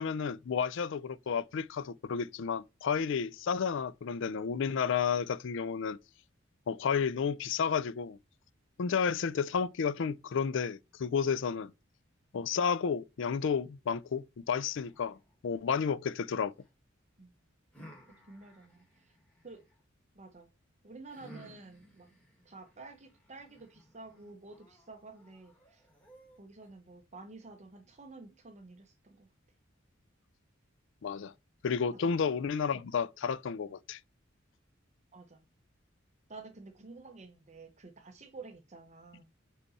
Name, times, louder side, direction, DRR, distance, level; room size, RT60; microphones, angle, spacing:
voice 1, 0.0-6.0 6.7-8.2 8.8-11.7 12.3-15.2 15.4-16.5 31.0-31.3 31.6-34.0, left 6 dB, 65° left, 0.4 m, -31 dB
sound 1, 14.5-16.7 17.7-19.8 21.1-26.7, equal, 5° left, 2.6 m, -58 dB
voice 2, 18.3-19.2 19.4-19.6 20.1-20.5 20.8-22.1 22.4-25.9 26.4-29.3 35.1-35.4 36.3-39.2, right 3 dB, 35° right, 0.8 m, -50 dB
5.3 x 4.9 x 4.1 m
head